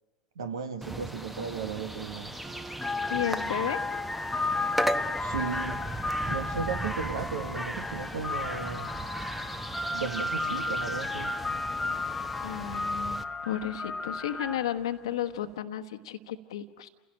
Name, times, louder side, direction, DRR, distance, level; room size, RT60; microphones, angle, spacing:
voice 1, 0.3-2.3 5.2-5.8 6.3-8.9 9.9-11.3, right 5 dB, 70° right, 1.7 m, -35 dB
sound 1, 0.8-13.2, right 1 dB, 5° right, 1.0 m, -37 dB
sound 2, 2.1-2.3 2.7-14.8, left 3 dB, 10° left, 1.3 m, -33 dB
Mallet percussion, 2.4-7.0, right 4 dB, 40° right, 6.7 m, -53 dB
voice 2, 3.1-3.8 12.4-16.9, left 10 dB, 65° left, 1.3 m, -33 dB
30.0 x 16.5 x 9.0 m
figure-of-eight pair, 80°, 3 cm